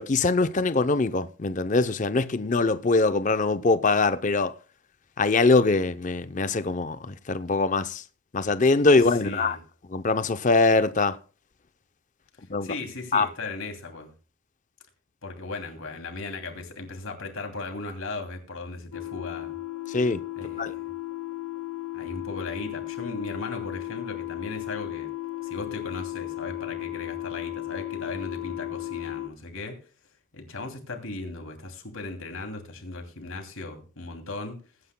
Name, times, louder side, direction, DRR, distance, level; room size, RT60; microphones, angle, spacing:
voice 1, 0.0-4.5 5.2-8.0 8.3-9.6 9.9-11.2 12.5-12.7 13.1-13.3 19.9-20.2 20.6-20.7, left 3 dB, 35° left, 0.6 m, -23 dB
voice 2, 9.2-9.6 12.6-14.1 15.2-19.5 20.4-20.9 21.9-25.1 25.4-29.8 30.3-34.6, left 3 dB, 70° left, 2.7 m, -37 dB
sound 1, 18.9-29.3, left 18 dB, 90° left, 0.7 m, -35 dB
21.0 x 9.7 x 2.2 m
head